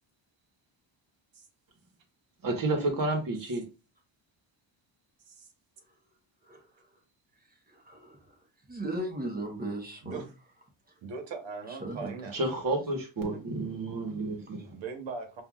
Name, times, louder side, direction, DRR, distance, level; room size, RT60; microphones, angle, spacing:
voice 1, 2.4-3.6 12.3-14.8, right 2 dB, 45° right, 1.4 m, -30 dB
voice 2, 7.7-8.2 8.7-10.2 11.8-12.1, right 1 dB, 20° right, 1.1 m, -36 dB
voice 3, 10.0-10.3 11.0-12.4 14.7-15.4, right 4 dB, 65° right, 1.2 m, -40 dB
5.5 x 2.7 x 2.4 m
cardioid pair, 115°, 48 cm